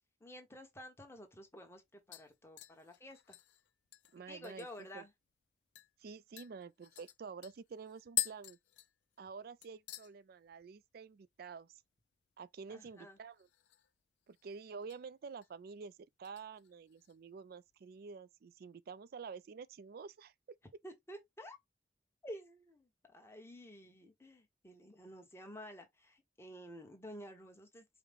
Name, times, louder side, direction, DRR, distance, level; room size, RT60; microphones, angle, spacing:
voice 1, 0.2-3.4 4.3-5.1 12.7-13.2 20.8-21.6 22.2-27.8, equal, 15° left, 1.1 m, -51 dB
sound 1, 1.1-1.2 1.5-1.8 2.1-4.9 5.3-5.4 5.7-5.9 6.4-9.4 9.6-10.1 10.5-10.9 11.1-11.2 13.3-14.0 14.3-15.0 15.4-15.7 16.2-17.2 17.5-17.6, left 16 dB, 75° left, 0.4 m, -44 dB
voice 2, 4.1-4.7 4.9-5.0 6.0-8.6 9.2-11.7 12.4-13.5 14.3-20.6, right 5 dB, 60° right, 0.4 m, -49 dB
4.8 x 2.1 x 3.4 m
head